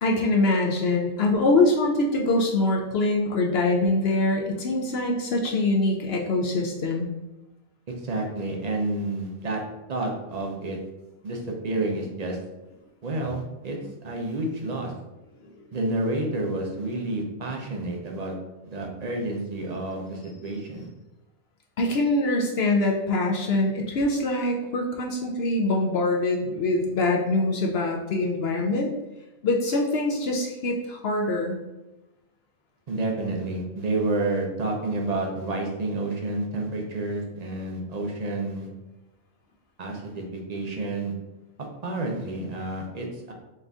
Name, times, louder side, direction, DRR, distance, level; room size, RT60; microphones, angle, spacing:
voice 1, 0.0-7.1 21.8-28.9 29.4-31.6, left 2 dB, 65° left, 0 dB, 0.7 m, -24 dB
voice 2, 8.0-9.6 9.9-10.8 11.2-12.4 13.0-13.8 14.0-14.9 15.7-18.3 18.6-20.9 32.9-38.7 39.8-41.1 41.8-43.3, right 2 dB, 45° right, 0 dB, 0.5 m, -29 dB
4.2 x 2.6 x 3.4 m, 1.0 s
omnidirectional pair, 1.3 m